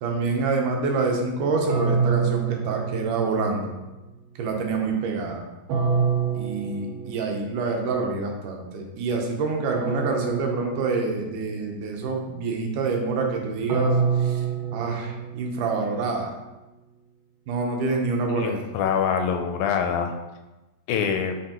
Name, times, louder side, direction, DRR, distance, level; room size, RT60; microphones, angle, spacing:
voice 1, 0.0-3.7 4.4-5.4 6.3-14.5 14.7-16.3 17.5-18.6, right 4 dB, 90° right, 1 dB, 2.4 m, -26 dB
sound 1, 1.7-3.7 5.7-7.5 9.7-11.5 13.7-15.9, right 6 dB, 75° right, 1.9 m, -27 dB
voice 2, 18.3-20.2 20.9-21.3, left 7 dB, 80° left, 5 dB, 2.0 m, -25 dB
5.9 x 5.4 x 2.9 m, 1.1 s
omnidirectional pair, 3.5 m